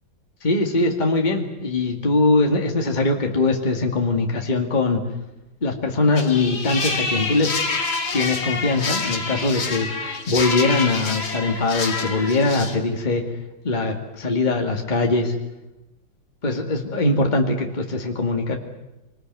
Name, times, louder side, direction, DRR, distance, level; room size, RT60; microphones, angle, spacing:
voice 1, 0.4-5.0 5.6-7.5 8.1-9.9 10.3-13.2 13.6-15.3 16.4-18.6, left 3 dB, 25° left, 2 dB, 2.2 m, -21 dB
sound 1, 6.2-12.8, left 4 dB, 90° left, 3.2 m, -27 dB
25.5 x 20.0 x 9.4 m, 0.99 s
omnidirectional pair, 2.1 m